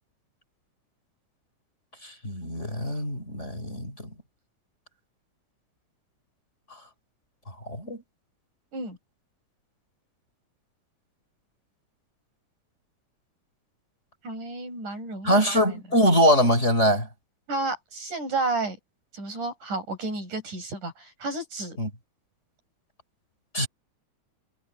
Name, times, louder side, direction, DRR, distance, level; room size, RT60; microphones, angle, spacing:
voice 1, 2.0-3.9 7.8-8.0 15.2-17.1 21.8-21.9 23.5-23.7, equal, 20° left, 4.0 m, -22 dB
voice 2, 14.2-15.8 17.5-18.8 19.1-21.8, right 2 dB, 90° right, 9.4 m, -32 dB
omnidirectional pair, 3.5 m